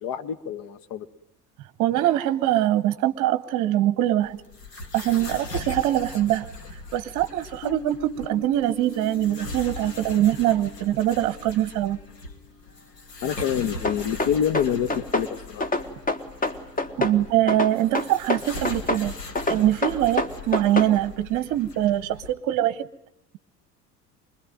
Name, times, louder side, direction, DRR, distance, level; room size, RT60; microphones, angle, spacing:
voice 1, 0.0-1.1 13.2-15.6, left 9 dB, 45° left, 1.5 m, -27 dB
voice 2, 1.8-4.4 4.9-6.5 6.9-12.0 17.0-19.1 19.5-22.9, right 13 dB, 40° right, 1.1 m, -23 dB
sound 1, 4.2-22.3, left 3 dB, 85° left, 2.4 m, -40 dB
Piano, 7.6-13.0, left 3 dB, ahead, 3.3 m, -42 dB
sound 2, 13.8-15.3 15.6-17.2 17.5-19.1 19.4-20.9, left 2 dB, 15° left, 1.6 m, -25 dB
25.5 x 21.5 x 9.1 m
figure-of-eight pair, 70°, 47 cm